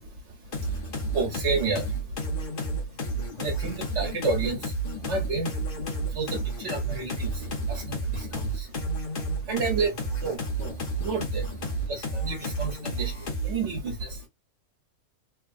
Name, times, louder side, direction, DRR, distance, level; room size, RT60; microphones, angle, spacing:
sound 1, 0.5-13.7, right 2 dB, 40° left, 1.0 m, -31 dB
voice 1, 1.1-1.9 3.4-4.6 5.0-5.5 6.1-7.3 7.7-8.4 9.5-9.9 10.2-11.5 11.9-14.2, right 4 dB, 55° right, 1.4 m, -30 dB
3.4 x 2.3 x 2.4 m
omnidirectional pair, 1.6 m